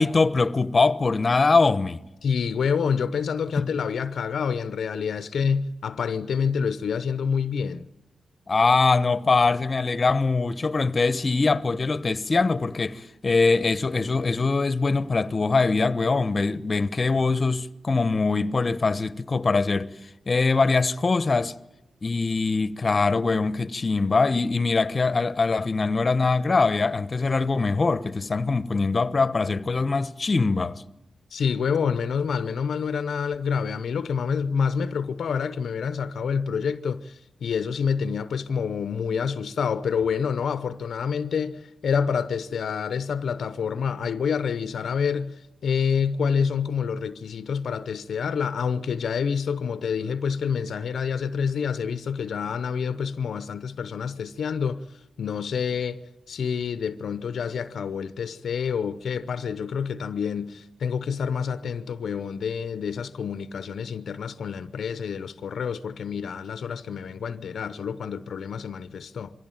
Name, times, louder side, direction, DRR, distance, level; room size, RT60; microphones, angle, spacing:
voice 1, 0.0-2.0 3.6-3.7 8.5-19.9 20.3-21.5 22.0-30.8, left 3 dB, 45° left, 1.0 m, -22 dB
voice 2, 2.2-7.9 31.3-54.9 55.2-56.0 56.3-69.3, left 6 dB, 80° left, 0.7 m, -27 dB
23.0 x 16.5 x 9.0 m
cardioid pair, 60°, 0 cm